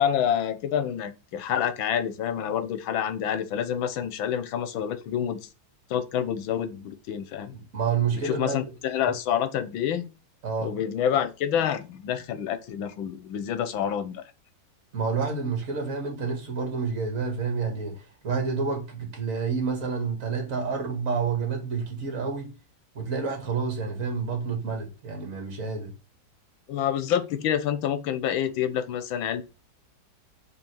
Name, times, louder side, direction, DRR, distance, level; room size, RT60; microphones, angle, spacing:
voice 1, 0.0-5.5 5.9-7.5 8.2-10.0 10.6-14.2 26.7-29.4, left 9 dB, 85° left, 1.7 m, -27 dB
voice 2, 7.5-8.6 10.4-10.7 14.9-22.5 22.9-25.9, right 5 dB, 40° right, 2.5 m, -29 dB
5.5 x 4.4 x 5.5 m
omnidirectional pair, 2.1 m